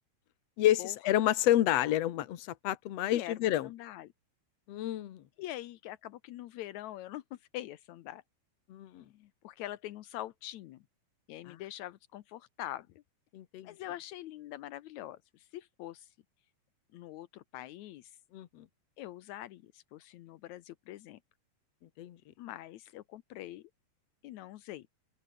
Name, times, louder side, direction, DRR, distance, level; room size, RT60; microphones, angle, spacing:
voice 1, 0.6-3.7 4.7-5.2 8.7-9.0 11.5-11.6 13.3-13.7 18.3-18.6 22.0-22.2, left 13 dB, 65° left, 1.7 m, -29 dB
voice 2, 3.1-4.1 5.4-8.2 9.0-10.8 11.3-13.0 13.6-16.1 16.9-18.2 19.0-21.2 22.4-23.7 24.2-24.9, left 14 dB, 85° left, 1.6 m, -44 dB
open air
omnidirectional pair, 4.4 m